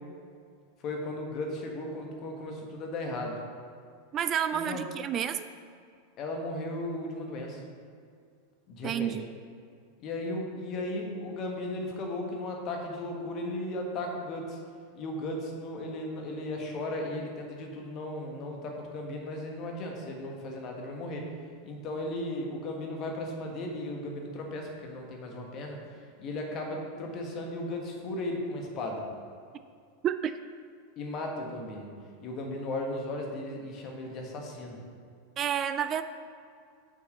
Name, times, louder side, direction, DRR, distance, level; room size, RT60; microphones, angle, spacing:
voice 1, 0.8-3.4 4.5-4.8 6.2-7.6 8.7-9.1 10.0-14.6 14.9-21.3 21.6-25.8 26.2-29.0 31.0-31.9 32.2-34.8, left 1 dB, 40° left, 1 dB, 1.4 m, -36 dB
voice 2, 4.1-5.5 8.8-9.2 30.0-30.3 35.4-36.0, right 9 dB, 35° right, 11 dB, 0.3 m, -29 dB
7.2 x 4.5 x 6.4 m, 2.3 s
figure-of-eight pair, 90°, 0 cm